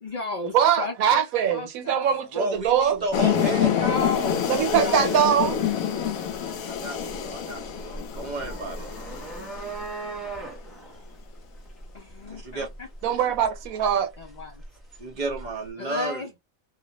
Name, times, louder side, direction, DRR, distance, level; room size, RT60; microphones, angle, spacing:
voice 1, 0.0-1.2 1.5-2.2 3.7-4.5 4.8-5.1 11.9-12.9 14.2-14.6 15.8-16.3, left 4 dB, 70° left, 0.4 m, -33 dB
voice 2, 0.5-3.0 4.5-5.6 13.0-14.1, right 9 dB, 85° right, 1.1 m, -22 dB
voice 3, 2.3-5.2 6.6-8.9 12.3-12.7 13.0-13.1 15.0-16.4, right 2 dB, 40° right, 0.8 m, -33 dB
sound 1, 2.6-15.7, right 2 dB, ahead, 1.1 m, -41 dB
sound 2, 3.1-10.1, left 8 dB, 90° left, 1.1 m, -27 dB
2.4 x 2.1 x 2.8 m
omnidirectional pair, 1.4 m